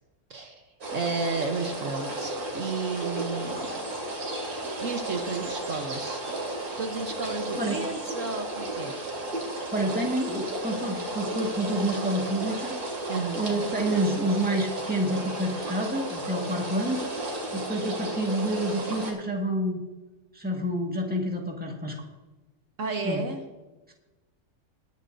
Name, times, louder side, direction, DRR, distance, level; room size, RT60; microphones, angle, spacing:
voice 1, 0.3-3.7 4.8-6.2 6.8-8.9 13.1-13.4 22.8-23.4, right 4 dB, 60° right, 4 dB, 1.3 m, -32 dB
sound 1, 0.8-19.1, right 1 dB, 85° right, 3.1 m, -33 dB
voice 2, 9.7-12.8 13.3-17.0 17.5-19.8 20.3-22.0 23.0-23.2, right 1 dB, 5° right, 0 dB, 1.9 m, -28 dB
20.0 x 10.0 x 2.7 m, 1.1 s
omnidirectional pair, 1.6 m